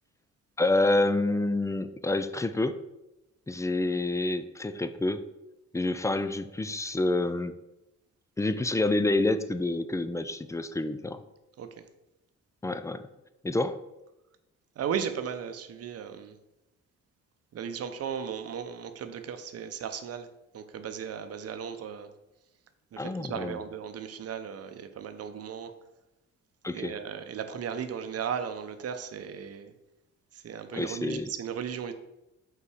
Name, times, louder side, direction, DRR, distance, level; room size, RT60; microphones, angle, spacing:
voice 1, 0.6-2.8 3.5-5.2 5.7-7.6 8.4-11.2 12.6-13.1 13.4-13.8 23.0-23.6 26.6-26.9 30.7-31.3, left 2 dB, 10° left, 12 dB, 0.3 m, -28 dB
voice 2, 14.8-16.4 17.5-20.3 20.5-22.1 22.9-25.7 26.7-29.7 30.3-31.9, right 7 dB, 55° right, 9 dB, 0.7 m, -36 dB
5.4 x 3.9 x 4.9 m, 0.94 s
cardioid pair, 90°, 30 cm